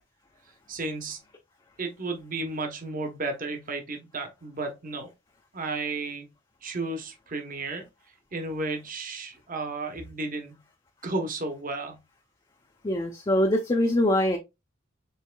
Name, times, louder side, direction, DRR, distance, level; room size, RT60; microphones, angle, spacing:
voice 1, 0.7-1.2 1.8-5.1 5.5-6.3 6.6-7.8 8.3-10.6 11.0-12.0, right 3 dB, 45° right, 1.0 m, -33 dB
voice 2, 12.8-14.4, left 1 dB, 25° left, 0.6 m, -23 dB
5.5 x 3.6 x 2.2 m
head